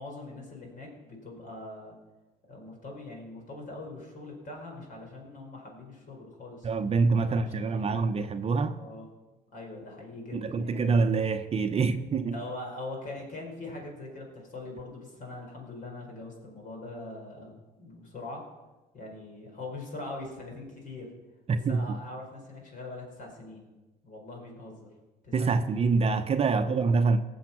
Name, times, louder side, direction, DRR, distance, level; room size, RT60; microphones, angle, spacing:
voice 1, 0.0-1.9 2.5-6.7 7.2-8.0 8.7-9.1 9.5-10.9 12.3-18.4 18.9-21.1 21.5-23.6 24.0-24.9 25.2-25.8 26.5-26.8, left 2 dB, 55° left, 4.9 m, -42 dB
voice 2, 6.6-8.8 10.3-12.4 21.5-21.8 25.3-27.2, right 4 dB, 35° right, 0.8 m, -26 dB
18.5 x 7.3 x 5.9 m
cardioid pair, 110°, 17 cm